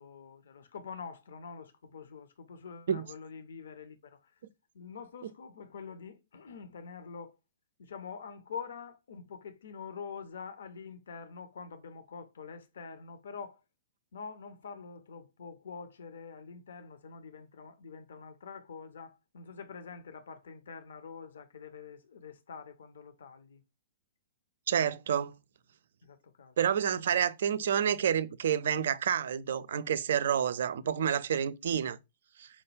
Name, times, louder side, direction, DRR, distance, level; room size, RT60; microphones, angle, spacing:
voice 1, 0.0-4.3 4.7-7.4 7.8-13.6 14.1-23.6 26.0-26.5 27.0-27.2, left 5 dB, 60° left, 0.5 m, -46 dB
voice 2, 24.7-25.3 26.6-32.0 32.4-32.5, right 8 dB, 55° right, 0.3 m, -29 dB
5.1 x 2.2 x 3.1 m
figure-of-eight pair, 110°, 0 cm